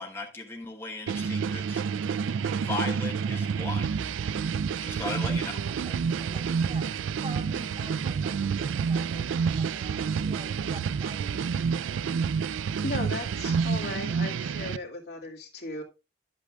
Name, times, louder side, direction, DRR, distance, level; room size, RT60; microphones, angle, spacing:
voice 1, 0.0-1.8 2.6-3.9 4.8-5.7, left 3 dB, 15° left, 1.4 m, -37 dB
sound 1, 1.1-14.8, right 6 dB, 90° right, 0.4 m, -29 dB
voice 2, 5.7-11.4 13.7-13.9, right 2 dB, 30° right, 1.3 m, -46 dB
voice 3, 12.8-15.8, left 2 dB, 60° left, 2.3 m, -36 dB
12.0 x 8.4 x 2.4 m
head